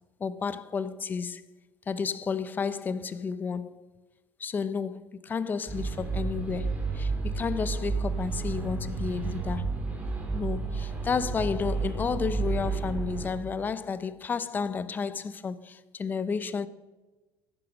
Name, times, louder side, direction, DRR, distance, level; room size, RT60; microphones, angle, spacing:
voice 1, 0.2-1.5 1.9-3.8 4.4-9.7 10.3-16.7, left 5 dB, 20° left, 0.7 m, -32 dB
sound 1, 5.7-13.3, right 4 dB, 15° right, 2.5 m, -31 dB
13.5 x 11.0 x 6.3 m
cardioid pair, 160°, 9 cm